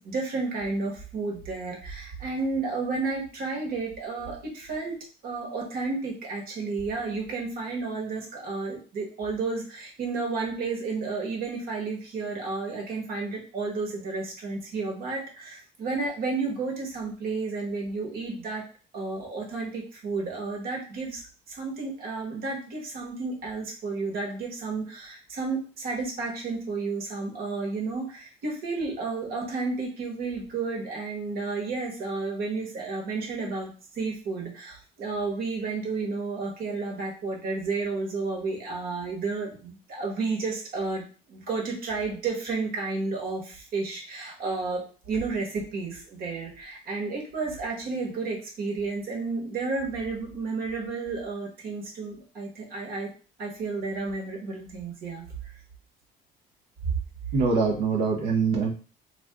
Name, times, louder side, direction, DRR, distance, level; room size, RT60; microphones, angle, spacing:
voice 1, 0.0-5.0 5.2-18.6 18.9-21.2 21.5-33.7 33.9-41.0 41.3-53.1 53.4-55.3, right 3 dB, 65° right, -1 dB, 1.2 m, -32 dB
voice 2, 57.3-58.7, right 4 dB, 85° right, -1 dB, 0.8 m, -24 dB
2.5 x 2.4 x 3.5 m, 0.38 s
cardioid pair, 110°, 17 cm